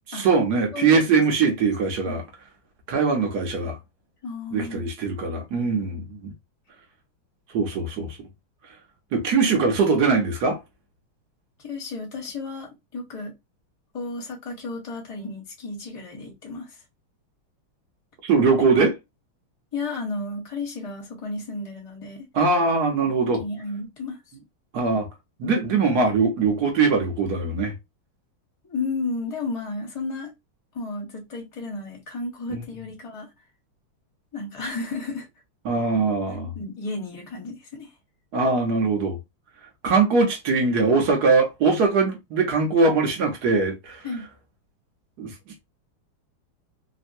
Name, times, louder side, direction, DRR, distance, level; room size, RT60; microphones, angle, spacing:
voice 1, 0.1-2.2 2.9-3.8 4.5-6.3 7.5-8.2 9.1-10.6 18.2-19.0 22.3-23.4 24.7-25.1 25.4-27.7 32.5-32.6 35.6-36.5 38.3-39.2 39.8-44.1 45.2-45.3, right 4 dB, 60° right, 1.2 m, -21 dB
voice 2, 0.7-1.2 2.0-2.2 4.2-4.8 11.6-13.3 13.9-16.7 19.7-22.3 23.0-24.2 25.4-25.6 28.6-30.3 30.7-33.3 34.3-35.3 36.5-37.9 44.0-44.3, left 3 dB, 25° left, 0.8 m, -33 dB
3.5 x 2.1 x 2.6 m
omnidirectional pair, 2.3 m